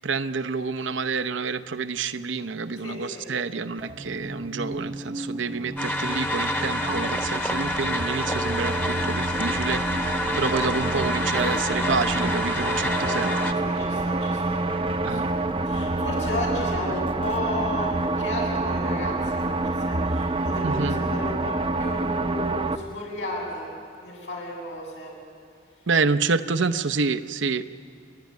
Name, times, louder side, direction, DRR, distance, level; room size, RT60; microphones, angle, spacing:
voice 1, 0.0-13.3 15.0-15.3 20.6-21.0 25.9-27.7, right 4 dB, 90° right, 9 dB, 0.8 m, -28 dB
voice 2, 2.8-3.3 13.0-23.7 24.0-25.1, left 1 dB, 80° left, -3 dB, 7.3 m, -34 dB
sound 1, 3.8-22.8, right 2 dB, 30° right, 0.7 m, -28 dB
sound 2, 5.8-13.5, left 1 dB, 10° left, 1.1 m, -28 dB
28.5 x 12.0 x 9.5 m, 2.2 s
head